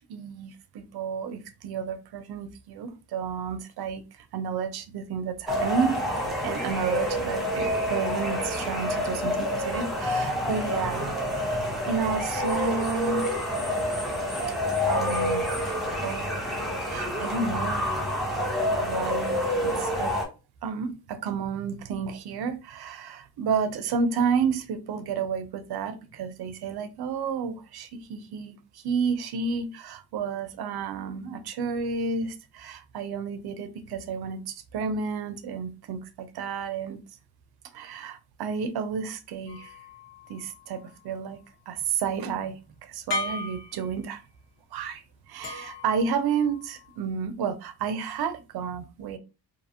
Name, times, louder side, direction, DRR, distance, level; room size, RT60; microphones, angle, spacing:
voice 1, 0.1-4.0 4.3-13.3 14.9-15.5 16.0-16.4 16.8-17.9 18.8-20.1 20.6-37.0 37.7-39.8 40.3-41.4 41.7-44.2 44.7-49.2, right 5 dB, 70° right, 0.6 m, -31 dB
sound 1, 5.5-20.2, left 1 dB, ahead, 0.8 m, -28 dB
sound 2, 39.5-41.1 43.1-44.4 45.4-47.0, left 2 dB, 85° left, 0.9 m, -37 dB
2.7 x 2.6 x 2.7 m
cardioid pair, 110°, 40 cm